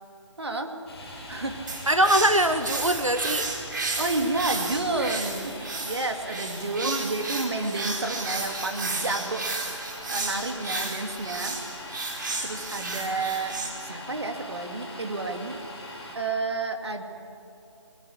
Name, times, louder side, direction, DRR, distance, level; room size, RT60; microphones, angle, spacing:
voice 1, 0.4-0.7 1.3-1.6 4.0-9.4 10.1-11.6 12.4-13.6 13.8-15.6 16.1-17.0, right 3 dB, 55° right, 5 dB, 2.6 m, -30 dB
Domestic sounds home sounds, 0.9-16.2, equal, 5° left, 5.8 m, -42 dB
sound 1, 1.7-13.7, right 3 dB, 40° right, 4.4 m, -33 dB
voice 2, 1.9-3.5 6.8-7.0, right 1 dB, 85° right, 8 dB, 1.6 m, -22 dB
24.0 x 21.0 x 8.5 m, 2.8 s
figure-of-eight pair, 155°, 16 cm